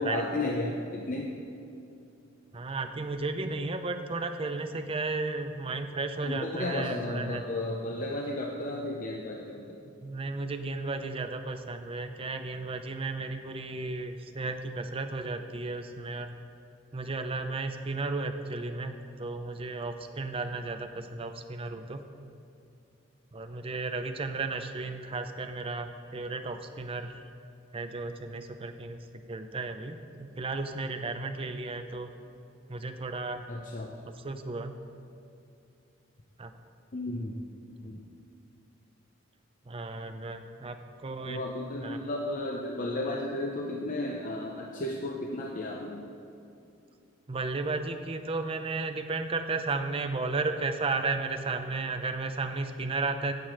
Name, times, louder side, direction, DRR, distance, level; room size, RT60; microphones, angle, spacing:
voice 1, 0.0-1.3 6.2-9.8 33.5-34.0 36.9-37.3 37.8-38.0 41.3-46.0, left 2 dB, 45° left, 0 dB, 0.6 m, -33 dB
voice 2, 2.5-7.4 10.0-16.3 16.9-22.1 23.3-27.2 27.7-32.1 32.7-33.4 34.1-34.8 36.4-36.5 39.7-41.4 41.7-42.0 47.3-53.3, right 3 dB, 30° right, 7 dB, 0.5 m, -34 dB
9.2 x 7.7 x 4.9 m, 2.7 s
head